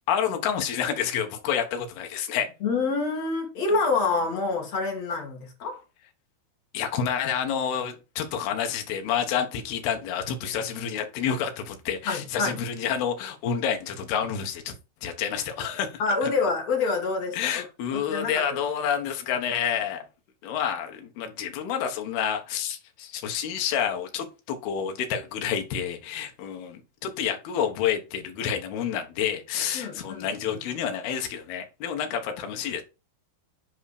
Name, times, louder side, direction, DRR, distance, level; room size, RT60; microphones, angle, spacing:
voice 1, 0.1-2.5 6.7-14.7 15.0-16.3 17.3-20.0 20.4-32.8, left 8 dB, 70° left, 2.9 m, -29 dB
voice 2, 2.6-5.8 12.1-12.6 16.0-17.6 17.9-18.6 29.7-30.3, left 4 dB, 50° left, 2.4 m, -27 dB
8.3 x 4.9 x 4.9 m
omnidirectional pair, 5.3 m